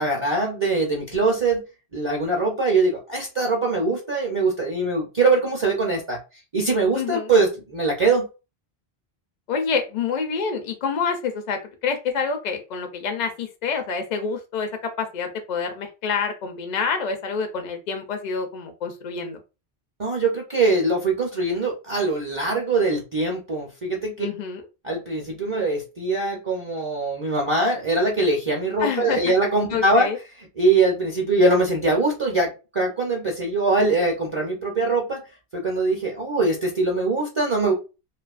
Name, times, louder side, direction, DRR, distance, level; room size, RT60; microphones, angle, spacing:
voice 1, 0.0-1.6 1.9-6.2 6.5-8.3 20.0-24.3 24.8-30.1 30.6-35.2 35.5-37.7, right 3 dB, 40° right, -1 dB, 0.5 m, -22 dB
voice 2, 6.9-7.3 9.5-19.4 24.2-24.6 28.8-29.3 29.7-30.2, left 5 dB, 55° left, 5 dB, 0.5 m, -27 dB
2.5 x 2.4 x 2.4 m, 0.30 s
omnidirectional pair, 1.1 m